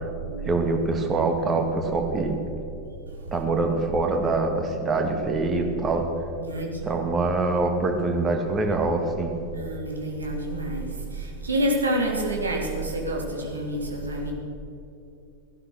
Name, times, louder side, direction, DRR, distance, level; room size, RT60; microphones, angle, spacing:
voice 1, 0.5-2.4 3.3-6.1 6.8-9.4, right 3 dB, 20° right, 4 dB, 2.1 m, -24 dB
voice 2, 9.5-14.3, right 1 dB, 75° right, 0 dB, 3.0 m, -28 dB
17.0 x 11.5 x 6.3 m, 2.7 s
figure-of-eight pair, 90°, 0 cm